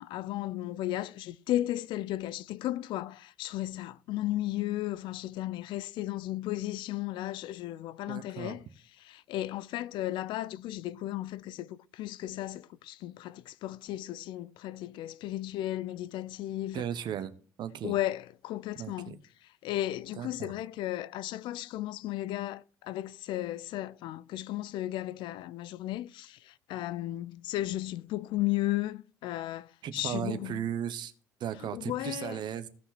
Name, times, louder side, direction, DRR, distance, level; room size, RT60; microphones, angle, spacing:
voice 1, 0.0-8.6 9.0-16.8 17.8-19.2 19.6-30.7 31.7-32.4, left 14 dB, 65° left, 0.5 m, -35 dB
voice 2, 8.1-8.6 16.7-17.3 17.6-17.9 18.8-19.2 20.2-20.5 29.8-31.1 31.4-32.7, right 9 dB, 60° right, 1.2 m, -36 dB
16.5 x 5.7 x 4.3 m
hypercardioid pair, 55°, 9 cm